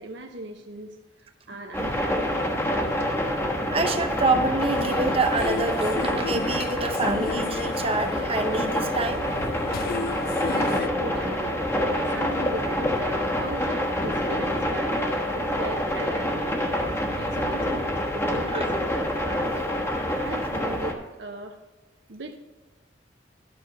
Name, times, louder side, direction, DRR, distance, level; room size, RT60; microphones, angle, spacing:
voice 1, 0.0-2.4 10.4-16.6 17.2-18.9 19.2-19.6 20.2-21.6 22.1-22.4, right 2 dB, 65° right, 3 dB, 0.8 m, -38 dB
sound 1, 1.7-20.9, left 1 dB, 10° left, 1.1 m, -27 dB
voice 2, 3.7-9.2 18.5-18.6, right 3 dB, 30° right, 5 dB, 0.9 m, -26 dB
sound 2, 4.7-10.9, left 5 dB, 50° left, 0.4 m, -35 dB
12.0 x 6.3 x 5.2 m, 1.2 s
head